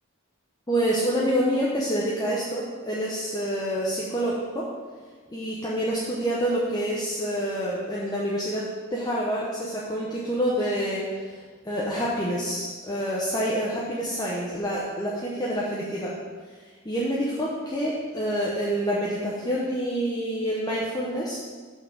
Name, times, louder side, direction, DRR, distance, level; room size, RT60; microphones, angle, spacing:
voice 1, 0.7-4.7 5.3-11.4 11.6-16.2 16.8-21.4, equal, 20° left, -6 dB, 0.9 m, -27 dB
5.9 x 5.8 x 7.0 m, 1.5 s
head